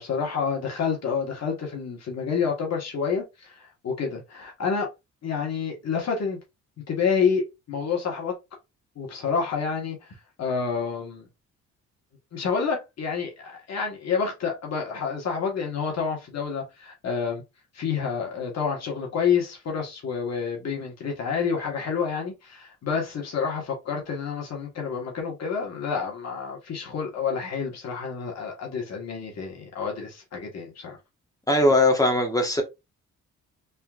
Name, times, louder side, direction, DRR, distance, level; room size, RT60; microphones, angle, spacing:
voice 1, 0.0-4.9 5.2-6.4 6.9-8.3 8.9-11.2 12.3-17.4 17.7-31.0, left 6 dB, 60° left, 1.6 m, -28 dB
voice 2, 31.5-32.6, left 1 dB, 10° left, 1.5 m, -20 dB
4.2 x 3.7 x 2.5 m
cardioid pair, 90°, 30 cm